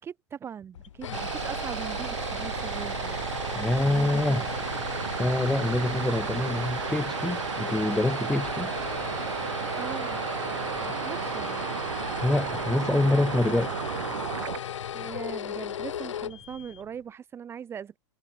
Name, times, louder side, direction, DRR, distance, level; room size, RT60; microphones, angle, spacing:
voice 1, 0.0-3.2 3.8-4.5 9.7-10.2 10.8-11.7 14.9-18.0, right 8 dB, 15° right, 2.3 m, -40 dB
sound 1, 0.7-17.0, left 9 dB, 85° left, 2.5 m, -36 dB
sound 2, 1.1-14.6, right 11 dB, 80° right, 1.3 m, -33 dB
voice 2, 3.5-4.4 5.2-8.7 12.2-13.8, left 2 dB, 5° left, 1.9 m, -26 dB
hypercardioid pair, 150°, 15 cm